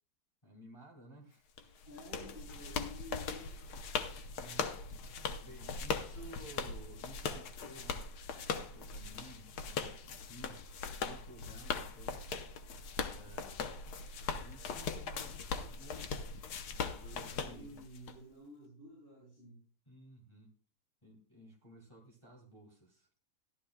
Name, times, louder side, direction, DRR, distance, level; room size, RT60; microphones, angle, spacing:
voice 1, 0.4-1.5 4.4-5.0 5.4-8.0 8.5-10.6 11.0-12.3 13.0-13.7 14.4-16.3 16.7-17.8 19.9-20.5 21.0-23.1, right 1 dB, 20° left, -2 dB, 1.8 m, -55 dB
sound 1, 1.6-18.1, left 5 dB, 80° left, 1.3 m, -40 dB
voice 2, 1.9-3.6 17.3-19.6, equal, 35° left, -7 dB, 5.9 m, -52 dB
14.5 x 11.5 x 2.3 m, 0.39 s
omnidirectional pair, 1.7 m